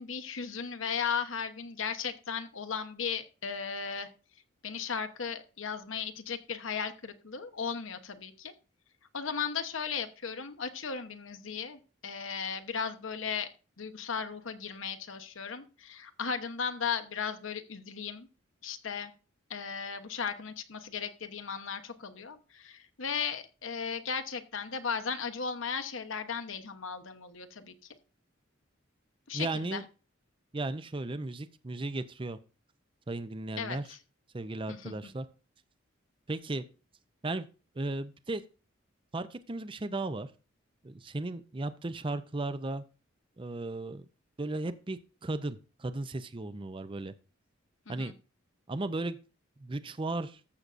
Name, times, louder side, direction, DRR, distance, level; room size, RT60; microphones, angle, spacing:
voice 1, 0.0-4.1 4.6-8.5 9.1-13.5 13.8-18.3 18.6-19.1 19.5-27.7 29.3-29.8 33.6-34.0 34.7-34.9 47.9-48.1, left 6 dB, 75° left, 7 dB, 1.0 m, -36 dB
voice 2, 29.3-29.8 30.5-32.4 33.1-33.8 34.3-35.3 36.3-36.6 37.2-37.5 37.8-38.4 39.1-40.3 40.8-42.8 43.4-44.0 44.4-47.1 47.9-48.1 48.7-49.2 49.6-50.4, right 2 dB, 25° right, 12 dB, 0.5 m, -35 dB
14.5 x 6.7 x 2.6 m, 0.34 s
head